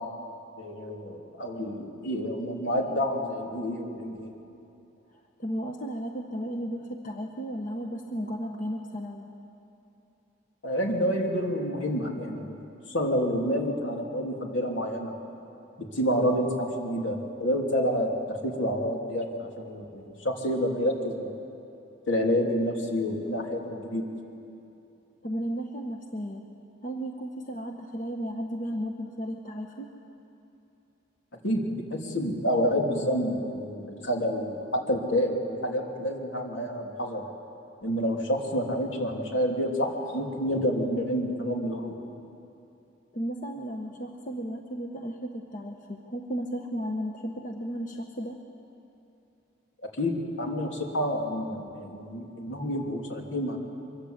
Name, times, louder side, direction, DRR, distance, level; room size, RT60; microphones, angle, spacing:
voice 1, 0.6-4.3 10.6-12.5 12.9-15.1 15.9-21.3 22.1-24.0 31.4-31.6 31.9-37.2 37.8-42.0 50.0-53.6, equal, 80° left, 1 dB, 3.2 m, -28 dB
voice 2, 5.4-9.3 25.2-26.5 26.8-29.9 43.1-48.4, equal, 45° left, 3 dB, 1.2 m, -34 dB
24.0 x 22.5 x 8.2 m, 2.8 s
head